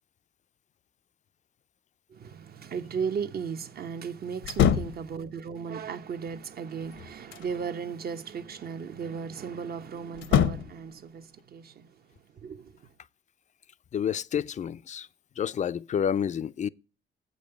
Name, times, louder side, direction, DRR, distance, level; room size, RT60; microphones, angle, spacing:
voice 1, 2.1-11.9 12.4-12.7, right 6 dB, 50° right, 0.8 m, -36 dB
sound 1, 4.4-5.1 6.7-7.6 10.1-10.8, left 8 dB, 75° left, 0.7 m, -25 dB
voice 2, 13.9-15.1 15.4-16.7, left 8 dB, 40° left, 0.4 m, -29 dB
7.9 x 5.3 x 7.6 m
cardioid pair, 90°, 20 cm